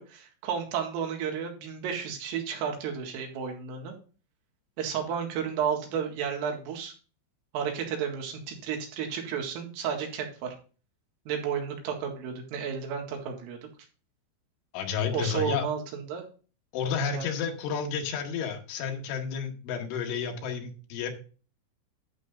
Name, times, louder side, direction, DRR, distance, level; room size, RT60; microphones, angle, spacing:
voice 1, 0.0-4.0 4.8-6.9 7.5-10.6 11.3-13.7 15.1-16.2 17.1-17.3, right 7 dB, 85° right, 3 dB, 4.5 m, -32 dB
voice 2, 14.7-15.7 16.7-21.1, left 6 dB, 75° left, 2 dB, 4.1 m, -31 dB
11.0 x 8.4 x 2.6 m, 0.37 s
omnidirectional pair, 5.8 m